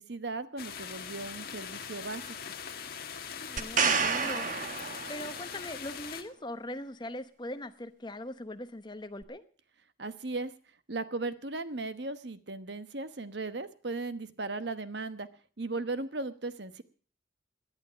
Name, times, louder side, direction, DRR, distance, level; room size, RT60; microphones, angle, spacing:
voice 1, 0.0-2.4 10.0-10.5 10.9-15.3 15.6-16.8, right 3 dB, 60° right, 12 dB, 1.1 m, -37 dB
sound 1, 0.6-6.2, left 7 dB, 50° left, 1.7 m, -41 dB
voice 2, 3.5-4.5 5.1-9.4, left 1 dB, 25° left, 11 dB, 0.9 m, -40 dB
sound 2, 3.6-5.5 9.2-9.3, right 5 dB, 45° right, 1.3 m, -29 dB
18.0 x 11.0 x 6.3 m, 0.42 s
head